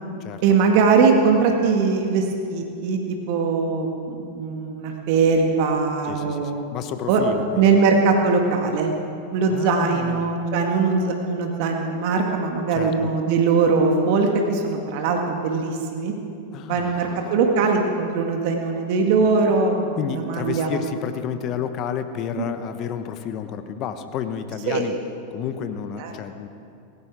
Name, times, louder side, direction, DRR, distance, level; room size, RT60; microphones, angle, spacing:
voice 1, 0.4-6.6 7.1-7.2 7.5-8.9 9.3-16.1 16.7-20.7 22.4-22.5 24.7-24.9 26.0-26.1, right 4 dB, 55° right, 2 dB, 1.9 m, -21 dB
voice 2, 6.0-7.8 9.5-10.3 12.7-13.1 16.5-17.5 19.9-24.9 25.3-26.5, left 8 dB, 40° left, 9 dB, 1.0 m, -31 dB
17.5 x 16.5 x 4.8 m, 2.5 s
hypercardioid pair, 95°, 0 cm